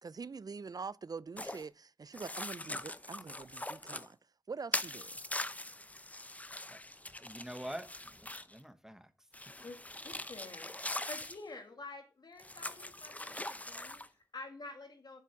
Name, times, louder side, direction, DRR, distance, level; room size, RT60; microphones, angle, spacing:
voice 1, 0.0-4.2 4.5-5.1, right 5 dB, 65° right, 0.3 m, -44 dB
sound 1, 1.4-1.6 2.1-4.1 4.7-8.6 9.3-11.4 12.4-14.1, left 1 dB, 20° left, 0.6 m, -42 dB
voice 2, 7.2-9.1, equal, 5° right, 1.1 m, -46 dB
voice 3, 10.0-15.2, left 3 dB, 85° left, 1.9 m, -49 dB
7.4 x 6.0 x 7.0 m
cardioid pair, 40°, 7 cm